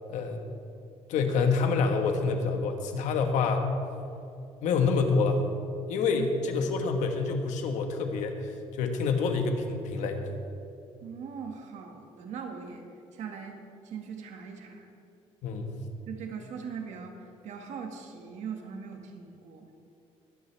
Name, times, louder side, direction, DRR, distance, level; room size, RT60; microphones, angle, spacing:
voice 1, 0.1-0.4 1.1-3.7 4.6-5.4 5.9-10.2 15.4-15.7, left 4 dB, 90° left, 5 dB, 1.5 m, -27 dB
voice 2, 11.0-12.8 13.1-13.6 13.8-14.9 16.1-17.2 17.4-19.7, right 6 dB, 75° right, 3 dB, 1.8 m, -40 dB
22.5 x 10.0 x 3.4 m, 2.6 s
cardioid pair, 115°, 12 cm